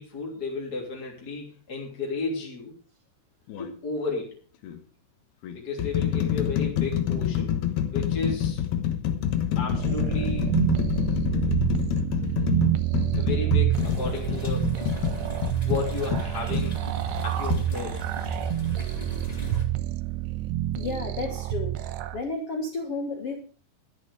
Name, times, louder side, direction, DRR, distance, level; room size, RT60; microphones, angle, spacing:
voice 1, 0.0-2.7 3.6-4.4 5.5-7.6 7.9-8.6 9.5-10.6 13.2-14.8 15.6-16.9 17.2-18.0 18.4-18.5, left 3 dB, 25° left, -3 dB, 2.9 m, -33 dB
sound 1, 3.5-3.7 4.6-4.8 5.4-16.7 17.5-17.7, left 10 dB, 70° left, 2.8 m, -27 dB
sound 2, 9.7-22.2, right 14 dB, 75° right, 2.8 m, -28 dB
sound 3, 13.7-19.7, equal, 50° left, 0.4 m, -37 dB
voice 2, 20.7-21.7 22.1-23.4, left 3 dB, 85° left, 4 dB, 1.3 m, -32 dB
13.5 x 10.5 x 4.9 m, 0.40 s
omnidirectional pair, 5.5 m